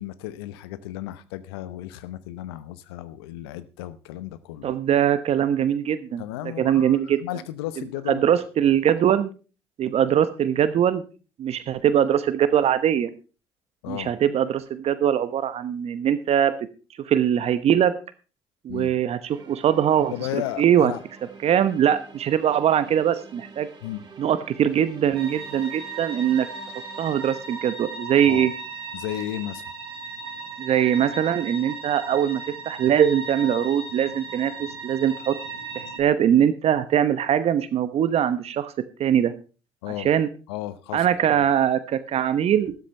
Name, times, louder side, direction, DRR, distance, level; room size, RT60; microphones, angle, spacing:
voice 1, 0.0-4.7 6.2-8.3 13.8-14.1 18.7-18.9 20.1-21.0 23.8-24.0 28.2-28.5 28.9-29.7 39.8-40.1 40.5-41.1 41.3-41.5, left 14 dB, 80° left, 15 dB, 0.9 m, -34 dB
voice 2, 4.6-6.2 6.6-7.2 8.1-9.3 9.8-11.0 11.4-13.1 13.9-16.5 17.0-17.9 18.6-20.1 20.6-20.9 21.4-23.7 24.2-26.5 27.0-28.5 30.6-35.3 35.7-38.7 39.0-39.3 40.0-40.3 40.9-42.7, right 9 dB, 55° right, 12 dB, 1.0 m, -22 dB
sound 1, 19.3-29.3, right 4 dB, 35° right, 3.5 m, -48 dB
sound 2, 25.2-36.0, right 3 dB, 90° right, 1.6 m, -37 dB
13.5 x 13.0 x 3.4 m, 0.35 s
hypercardioid pair, 50°, 13 cm